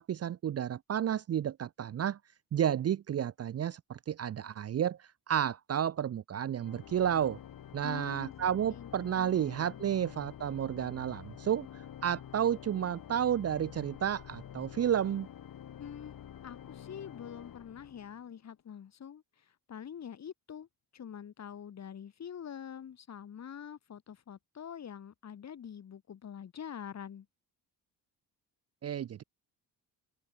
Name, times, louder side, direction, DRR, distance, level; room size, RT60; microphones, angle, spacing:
voice 1, 0.0-2.2 2.5-5.0 5.3-7.4 7.7-11.7 12.0-15.3 28.8-29.2, right 9 dB, 40° right, 0.6 m, -31 dB
Organ, 6.6-18.4, left 10 dB, 55° left, 4.6 m, -48 dB
voice 2, 7.8-8.3 8.7-8.9 9.2-10.0 15.8-16.2 16.4-19.2 19.7-20.7 20.9-27.3, left 8 dB, 40° left, 1.9 m, -45 dB
open air
cardioid pair, 145°, 39 cm